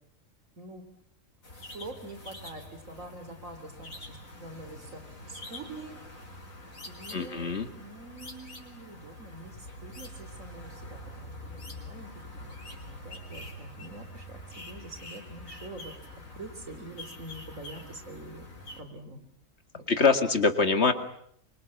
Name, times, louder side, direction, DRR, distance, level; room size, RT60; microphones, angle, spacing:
sound 1, 1.4-18.8, left 1 dB, 85° left, 4.9 m, -45 dB
voice 1, 1.5-6.3 6.9-15.9 16.4-18.5 18.8-19.2 19.8-19.9, right 2 dB, 75° right, 8 dB, 3.8 m, -46 dB
voice 2, 7.1-7.7 19.9-20.9, left 4 dB, 55° left, 8 dB, 2.4 m, -24 dB
25.0 x 24.5 x 8.5 m, 0.68 s
omnidirectional pair, 1.4 m